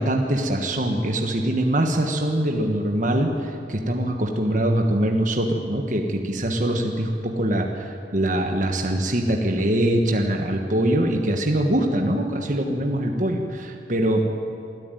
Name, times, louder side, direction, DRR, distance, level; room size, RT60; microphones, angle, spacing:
voice 1, 0.0-14.3, right 1 dB, 45° right, 2 dB, 1.4 m, -23 dB
23.5 x 13.0 x 9.2 m, 2.7 s
head